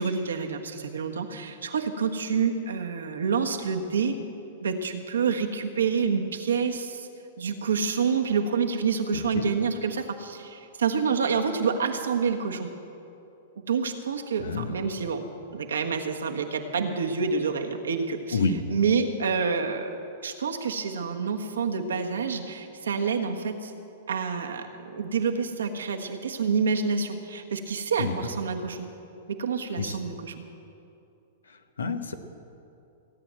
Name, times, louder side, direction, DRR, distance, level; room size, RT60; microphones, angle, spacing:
voice 1, 0.0-4.2 4.6-7.1 7.4-12.7 13.6-15.2 15.5-18.4 18.7-19.9 20.2-23.7 24.1-28.9 29.3-30.3, right 5 dB, 80° right, 3 dB, 1.4 m, -28 dB
voice 2, 14.4-14.8 18.3-18.6 28.0-28.1 29.8-30.0 31.5-32.1, left 4 dB, 85° left, 8 dB, 1.2 m, -28 dB
17.5 x 9.2 x 7.7 m, 2.7 s
hypercardioid pair, 110°, 0 cm